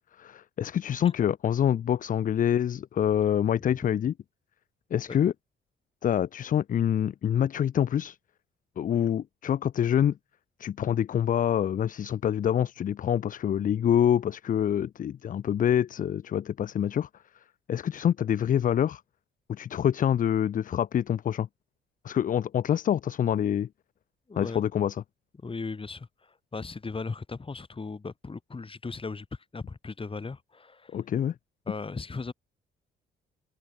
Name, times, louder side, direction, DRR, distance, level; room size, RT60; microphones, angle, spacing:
voice 1, 0.2-4.1 4.9-5.3 6.0-8.2 8.8-10.2 10.6-17.1 17.7-19.0 19.5-21.5 22.0-23.7 24.4-25.0 30.9-31.3, left 9 dB, 45° left, 0.5 m, -26 dB
voice 2, 24.3-24.6 25.4-29.3 29.5-31.0 31.7-32.3, left 4 dB, 25° left, 4.3 m, -37 dB
open air
cardioid pair, 90°, 20 cm